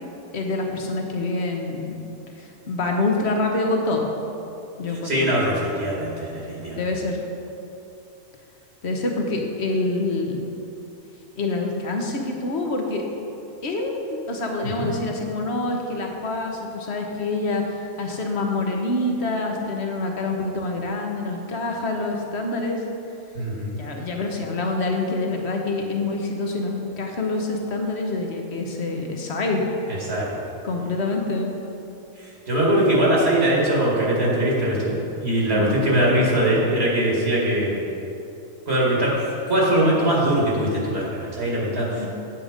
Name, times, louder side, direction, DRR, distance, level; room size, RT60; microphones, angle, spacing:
voice 1, 0.3-1.9 2.4-4.1 4.8-5.3 6.7-7.2 8.8-10.4 11.4-13.0 13.6-22.8 23.8-29.6 30.6-31.5 35.5-35.8 42.0-42.1, left 2 dB, 55° left, 2 dB, 1.3 m, -26 dB
voice 2, 5.0-6.8 14.8-14.9 23.3-23.8 30.1-30.3 32.2-37.8 38.7-42.1, right 1 dB, 50° right, -5 dB, 2.3 m, -21 dB
8.6 x 7.8 x 5.1 m, 2.8 s
omnidirectional pair, 1.4 m